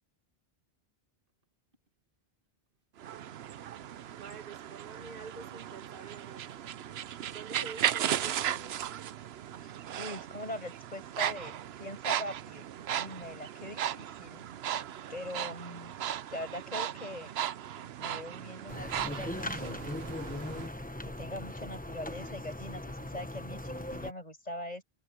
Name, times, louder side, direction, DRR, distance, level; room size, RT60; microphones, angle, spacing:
sound 1, 3.0-20.7, right 10 dB, 80° right, 0.9 m, -36 dB
voice 1, 4.2-6.7 7.3-8.8 13.2-13.4, right 4 dB, 60° right, 1.8 m, -48 dB
voice 2, 9.6-14.4 15.1-15.9 16.3-17.4 18.0-19.9 21.0-24.8, left 1 dB, 40° left, 7.8 m, -42 dB
sound 2, 18.7-24.1, left 1 dB, 10° left, 1.1 m, -39 dB
omnidirectional pair, 1.0 m